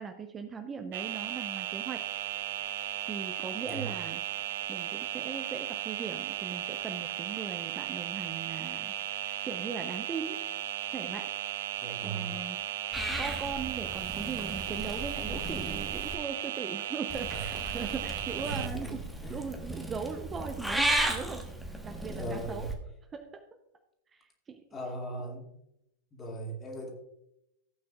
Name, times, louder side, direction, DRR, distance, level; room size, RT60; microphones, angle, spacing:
voice 1, 0.0-2.0 2.9-4.2 4.7-10.4 10.9-11.3 12.0-12.6 13.2-19.0 19.3-21.4 21.8-22.7 23.1-23.4 24.2-24.6, right 5 dB, 20° right, 6 dB, 0.8 m, -39 dB
sound 1, 0.9-18.7, right 13 dB, 55° right, 0.5 m, -36 dB
voice 2, 11.8-12.4 17.3-17.5 18.4-18.9 19.2-19.4 22.1-22.7 24.7-25.5 26.1-26.9, right 2 dB, 20° left, 1 dB, 2.5 m, -38 dB
Purr / Meow, 12.9-16.2 17.1-22.7, right 1 dB, ahead, 1.4 m, -35 dB
15.5 x 8.6 x 2.5 m, 0.83 s
figure-of-eight pair, 90°, 0 cm